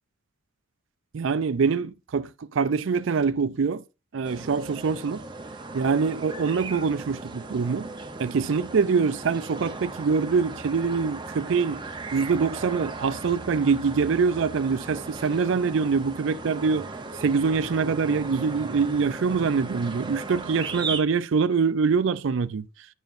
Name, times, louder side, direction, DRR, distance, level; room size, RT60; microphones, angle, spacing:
voice 1, 1.1-3.8 4.1-5.2 5.7-7.9 8.2-11.8 12.1-16.9 17.2-22.7, right 5 dB, 60° right, 0.4 m, -24 dB
sound 1, 4.2-21.0, right 3 dB, 20° right, 0.6 m, -37 dB
9.1 x 7.1 x 2.5 m
head